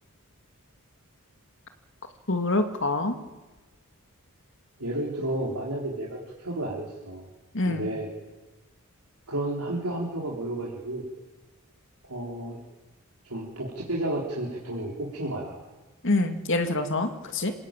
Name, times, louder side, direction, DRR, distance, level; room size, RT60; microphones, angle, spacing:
voice 1, 2.3-3.2 7.5-7.9 16.0-17.5, left 2 dB, 60° left, 6 dB, 2.5 m, -26 dB
voice 2, 4.8-7.3 7.6-8.1 9.3-11.0 12.0-12.6 13.2-15.6, right 1 dB, 90° right, -4 dB, 3.9 m, -32 dB
27.0 x 18.0 x 9.1 m, 1.1 s
head